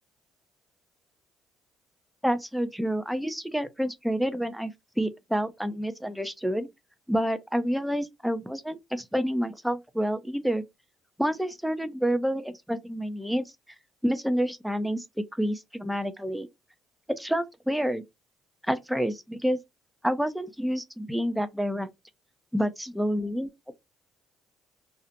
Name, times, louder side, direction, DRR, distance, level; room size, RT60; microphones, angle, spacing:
voice 1, 2.2-4.7 5.0-6.7 7.1-10.6 11.2-13.4 14.0-16.5 17.1-18.0 18.7-19.6 20.0-21.9 22.5-23.5, equal, 5° right, 0.5 m, -28 dB
2.4 x 2.1 x 2.7 m
supercardioid pair, 60°, 0 cm